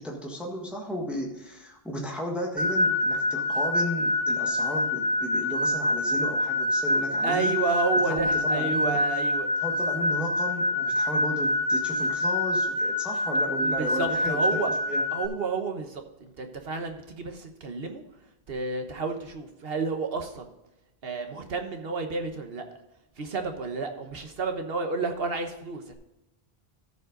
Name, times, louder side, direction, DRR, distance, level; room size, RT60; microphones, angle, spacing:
voice 1, 0.0-7.5 8.0-9.0 9.6-15.0, equal, ahead, -1 dB, 1.5 m, -34 dB
sound 1, 2.6-15.3, left 1 dB, 50° right, 1.7 m, -26 dB
voice 2, 7.2-9.5 13.6-14.7 15.1-16.0 16.4-18.0 18.5-20.5 21.0-22.7 23.2-25.9, right 4 dB, 70° right, 5 dB, 1.4 m, -31 dB
14.5 x 5.4 x 3.9 m, 0.93 s
omnidirectional pair, 1.0 m